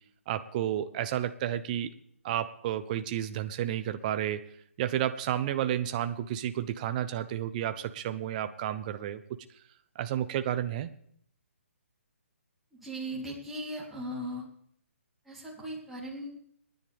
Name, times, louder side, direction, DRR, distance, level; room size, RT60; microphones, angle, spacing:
voice 1, 0.3-1.9 2.2-4.5 4.8-9.2 9.9-10.9, right 11 dB, 35° right, 10 dB, 0.9 m, -31 dB
voice 2, 12.7-14.5 15.3-16.3, right 1 dB, ahead, -7 dB, 3.5 m, -38 dB
29.5 x 10.5 x 3.6 m, 0.67 s
figure-of-eight pair, 140°, 7 cm